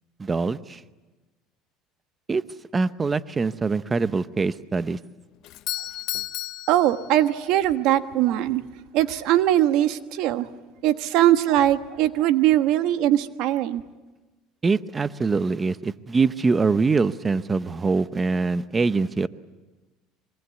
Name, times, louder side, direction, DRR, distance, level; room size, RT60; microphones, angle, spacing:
voice 1, 0.2-0.8 2.3-2.4 2.7-5.0 14.6-19.3, right 4 dB, 20° right, 14 dB, 0.8 m, -23 dB
Doorbell, 5.4-7.6, left 15 dB, 55° left, 0.8 m, -33 dB
voice 2, 6.7-8.6 8.9-10.5 10.8-13.8, right 13 dB, 65° right, 10 dB, 1.3 m, -21 dB
25.0 x 23.0 x 8.3 m, 1.2 s
supercardioid pair, 125°, 0 cm